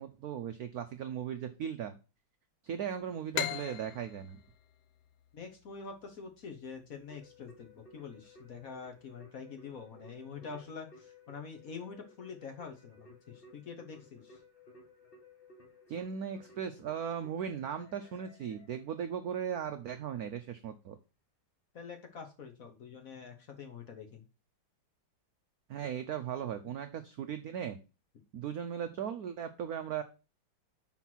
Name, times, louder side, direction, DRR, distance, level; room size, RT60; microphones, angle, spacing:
voice 1, 0.0-2.0 2.6-4.4 15.9-21.0 25.7-27.8 28.3-30.0, right 8 dB, 80° right, 8 dB, 0.8 m, -37 dB
sound 1, 3.3-6.8, left 10 dB, 70° left, 0.8 m, -39 dB
voice 2, 5.3-14.4 21.7-24.2, left 5 dB, 50° left, 5 dB, 1.2 m, -46 dB
Keyboard (musical), 7.1-19.5, left 3 dB, 30° left, 1.6 m, -58 dB
5.7 x 4.5 x 6.0 m, 0.31 s
omnidirectional pair, 2.3 m